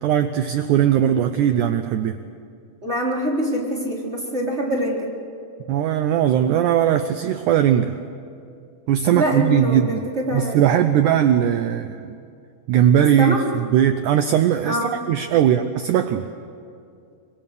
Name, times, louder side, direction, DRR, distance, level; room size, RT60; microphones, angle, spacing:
voice 1, 0.0-2.3 5.7-8.0 8.9-12.2 12.7-16.3, right 10 dB, 80° right, 9 dB, 1.8 m, -19 dB
voice 2, 2.8-5.1 9.1-10.6 13.2-13.4 14.6-15.0, right 1 dB, 15° right, -3 dB, 3.5 m, -24 dB
24.5 x 22.5 x 6.7 m, 2.4 s
omnidirectional pair, 4.3 m